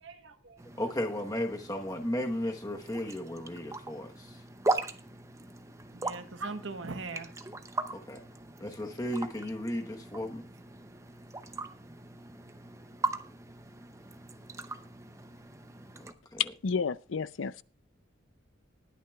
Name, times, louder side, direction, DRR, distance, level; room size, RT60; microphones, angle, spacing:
voice 1, 0.0-0.6 5.9-7.4 7.9-8.0, right 3 dB, 70° right, 1.2 m, -40 dB
sound 1, 0.6-16.1, right 3 dB, 15° right, 0.6 m, -39 dB
voice 2, 0.8-4.4 7.9-8.2 8.6-10.4 16.0-16.5, left 1 dB, 20° left, 1.1 m, -35 dB
voice 3, 16.6-17.6, left 5 dB, 75° left, 0.5 m, -31 dB
20.0 x 9.8 x 2.3 m
head